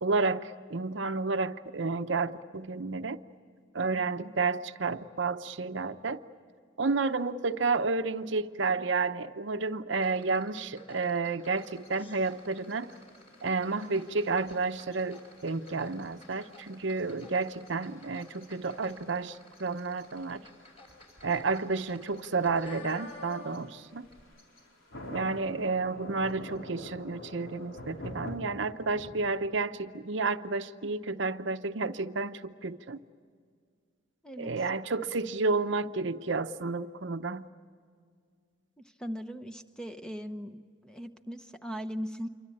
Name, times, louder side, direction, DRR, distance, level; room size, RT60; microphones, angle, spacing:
voice 1, 0.0-3.2 3.7-6.2 6.8-12.9 13.4-20.4 21.2-24.1 25.1-33.0 34.4-37.5, right 3 dB, 65° right, 10 dB, 0.8 m, -31 dB
sound 1, 10.0-23.8 24.0-24.2, left 2 dB, 30° left, 6.0 m, -52 dB
sound 2, 11.6-29.3, left 1 dB, 90° left, 4.4 m, -49 dB
voice 2, 39.0-42.3, equal, 5° left, 8 dB, 0.8 m, -39 dB
27.5 x 24.5 x 8.6 m, 2.1 s
head